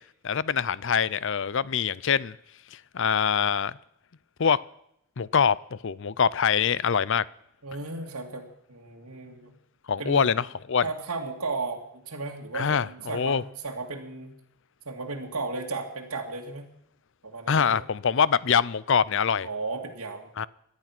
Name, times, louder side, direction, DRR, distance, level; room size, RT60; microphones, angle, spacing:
voice 1, 0.2-2.4 2.9-3.8 4.4-4.6 5.2-7.2 9.9-10.4 10.7-10.8 12.5-13.4 17.5-19.5 20.4-20.5, left 7 dB, 60° left, 0.5 m, -24 dB
voice 2, 7.6-9.6 10.0-10.3 10.8-14.4 14.9-16.7 17.2-17.8 19.4-20.5, right 3 dB, 90° right, 2.3 m, -35 dB
18.0 x 12.5 x 6.1 m
head